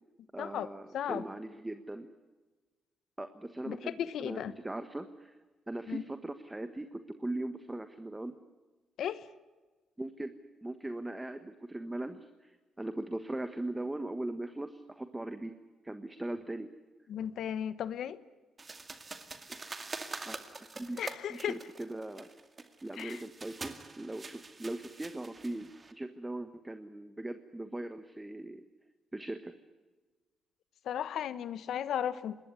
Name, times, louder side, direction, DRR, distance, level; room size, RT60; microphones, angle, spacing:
voice 1, 0.3-2.1 3.2-5.4 5.7-8.3 10.0-10.3 10.6-15.5 15.8-16.7 19.5-19.7 20.2-20.4 20.7-21.0 21.3-22.3 22.8-28.6 29.1-29.5, right 1 dB, 10° right, 9 dB, 1.3 m, -40 dB
voice 2, 0.9-1.2 3.7-4.5 5.9-6.0 9.0-9.2 17.1-18.2 21.0-21.6 23.0-23.2 30.8-32.4, left 9 dB, 70° left, 15 dB, 1.2 m, -35 dB
sound 1, 18.6-25.9, right 3 dB, 25° right, 2.2 m, -45 dB
25.5 x 20.5 x 9.8 m, 1.3 s
cardioid pair, 120°, 0 cm